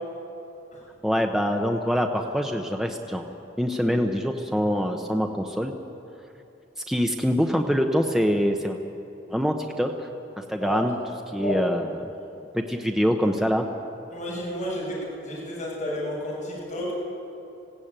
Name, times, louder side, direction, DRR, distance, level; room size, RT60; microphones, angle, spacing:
voice 1, 1.0-3.3 3.6-5.7 6.9-8.8 9.3-10.1 10.4-11.0 11.3-12.0 12.5-13.7, equal, ahead, 3 dB, 0.8 m, -24 dB
voice 2, 11.4-11.7 14.1-16.9, left 1 dB, 40° left, -7 dB, 6.9 m, -31 dB
20.0 x 16.5 x 8.9 m, 2.8 s
head